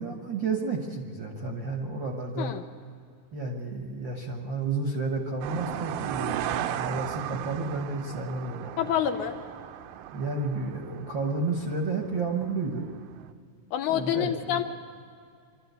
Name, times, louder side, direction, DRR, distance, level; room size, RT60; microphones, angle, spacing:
voice 1, 0.0-2.5 3.3-8.7 10.1-12.9 13.9-14.6, right 3 dB, 55° right, 1 dB, 1.4 m, -31 dB
sound 1, 5.4-13.3, right 12 dB, 80° right, 2.2 m, -36 dB
voice 2, 8.8-9.3 13.7-14.6, left 10 dB, 75° left, 6 dB, 2.1 m, -27 dB
25.0 x 13.0 x 8.2 m, 2.2 s
omnidirectional pair, 3.8 m